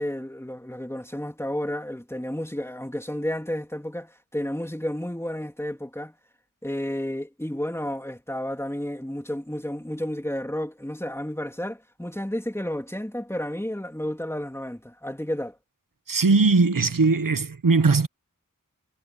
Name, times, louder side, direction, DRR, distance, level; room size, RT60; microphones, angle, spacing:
voice 1, 0.0-6.1 6.6-15.6, left 1 dB, 5° left, 3.1 m, -31 dB
voice 2, 16.1-18.1, right 4 dB, 75° right, 1.2 m, -19 dB
wide cardioid pair, 40°, 33 cm